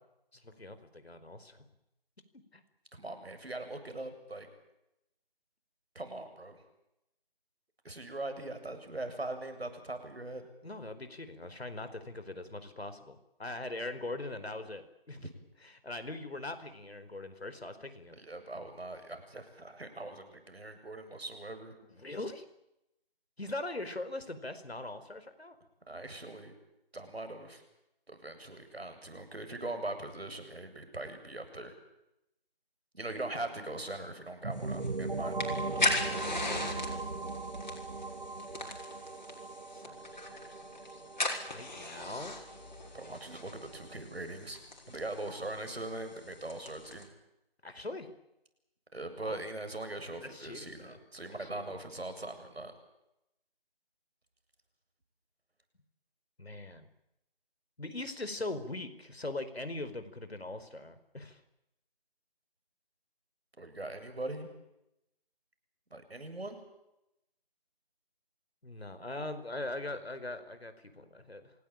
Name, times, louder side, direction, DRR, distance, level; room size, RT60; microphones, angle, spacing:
voice 1, 0.3-1.6 2.5-2.6 10.6-15.3 15.6-18.2 21.9-22.4 23.4-25.6 36.1-37.2 39.7-40.2 40.5-40.6 40.9-41.0 41.4-42.4 47.6-48.1 49.2-49.4 50.2-51.0 51.3-51.8 56.4-56.9 57.8-61.4 68.6-71.5, left 2 dB, 85° left, 10 dB, 4.8 m, -41 dB
voice 2, 3.0-4.5 5.9-6.6 7.8-10.5 15.2-15.3 18.1-21.7 25.9-26.5 26.9-27.6 28.1-31.7 32.9-35.4 42.9-44.6 44.9-47.1 48.9-52.7 63.6-64.5 65.9-66.6, right 2 dB, 80° right, 8 dB, 7.7 m, -41 dB
sound 1, 34.4-44.0, right 3 dB, 55° right, 2.8 m, -39 dB
sound 2, 34.6-47.0, left 2 dB, 50° left, 6.2 m, -39 dB
27.0 x 20.0 x 9.0 m, 0.86 s
figure-of-eight pair, 175°, 30 cm